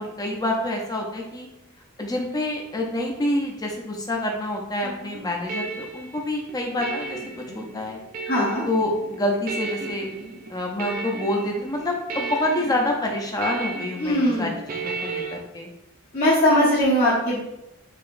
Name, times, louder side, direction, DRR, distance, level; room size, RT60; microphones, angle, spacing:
voice 1, 0.0-1.5 2.0-7.2 7.5-8.0 8.6-10.1 10.5-15.7, left 1 dB, 20° left, 1 dB, 0.6 m, -27 dB
sound 1, 4.8-15.4, right 4 dB, 45° right, 0.4 m, -35 dB
voice 2, 8.3-8.6 14.0-14.5 16.1-17.4, equal, 50° left, -10 dB, 1.0 m, -20 dB
4.9 x 2.9 x 2.5 m, 0.90 s
head